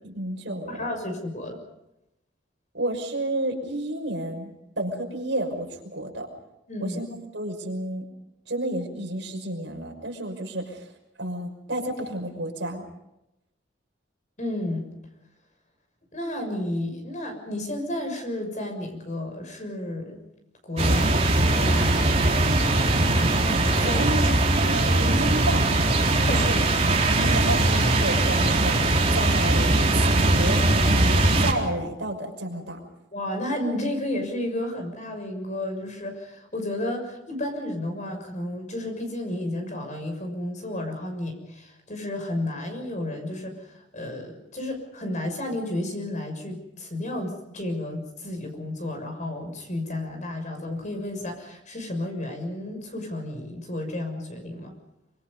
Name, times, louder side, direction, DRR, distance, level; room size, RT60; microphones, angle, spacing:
voice 1, 0.0-0.8 2.7-4.5 4.8-6.3 6.8-7.1 7.3-8.0 8.5-10.9 11.2-12.8 23.9-24.2 24.5-25.6 26.3-26.7 27.1-32.8, right 1 dB, 65° right, 3 dB, 6.0 m, -31 dB
voice 2, 0.7-1.6 6.7-7.0 14.4-14.9 16.1-20.2 20.6-22.0 23.8-24.0 26.3-26.4 33.1-54.7, left 1 dB, 40° left, 5 dB, 6.6 m, -32 dB
sound 1, 20.8-31.5, right 2 dB, 35° right, 3.8 m, -21 dB
26.0 x 25.5 x 5.5 m, 0.89 s
head